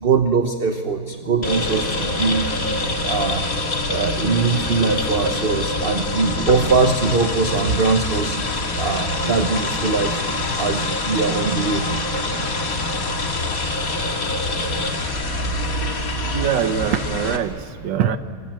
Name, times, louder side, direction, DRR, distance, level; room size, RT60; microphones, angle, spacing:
voice 1, 0.0-2.5 3.0-3.4 3.9-10.2 10.6-11.8 15.4-15.5, right 4 dB, 40° right, 6 dB, 1.0 m, -21 dB
sound 1, 1.4-17.4, left 2 dB, 45° left, 2.3 m, -25 dB
voice 2, 16.3-18.2, right 9 dB, 70° right, 10 dB, 1.7 m, -23 dB
25.5 x 24.0 x 7.6 m, 2.7 s
omnidirectional pair, 2.1 m